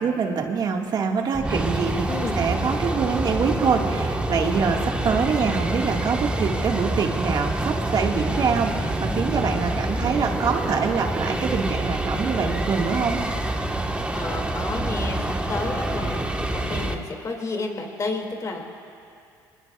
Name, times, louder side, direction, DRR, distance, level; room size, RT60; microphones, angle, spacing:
voice 1, 0.0-2.1 2.4-13.2, right 5 dB, 50° right, 2 dB, 1.8 m, -25 dB
sound 1, 1.3-16.9, right 1 dB, 10° right, 1.4 m, -26 dB
voice 2, 2.1-2.4 14.1-18.7, left 3 dB, 40° left, 2 dB, 2.5 m, -31 dB
24.5 x 20.5 x 2.4 m, 2.5 s
supercardioid pair, 75°, 9 cm